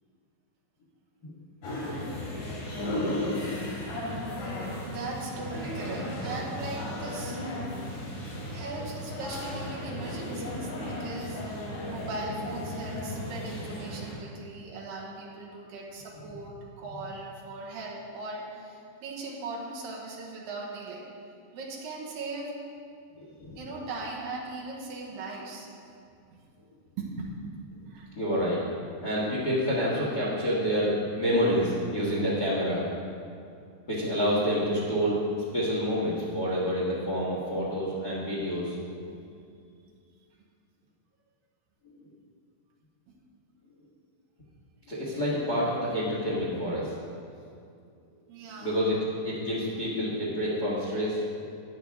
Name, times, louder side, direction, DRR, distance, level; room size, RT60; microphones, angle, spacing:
sound 1, 1.6-14.1, left 1 dB, 80° left, 4.9 m, -35 dB
voice 1, 1.7-2.1 4.8-7.4 7.7-8.1 8.5-11.5 11.9-21.1 21.5-22.6 23.6-25.7 26.3-26.4 27.0-27.3 27.9-28.1 38.2-38.3 39.8-39.9 48.3-48.8, right 3 dB, 65° right, -3 dB, 2.8 m, -39 dB
voice 2, 28.1-32.9 33.9-35.2 35.5-38.7 44.9-46.9 48.6-49.0 49.2-51.2, equal, 60° left, -5 dB, 1.0 m, -28 dB
12.0 x 9.6 x 3.5 m, 2.4 s
omnidirectional pair, 4.7 m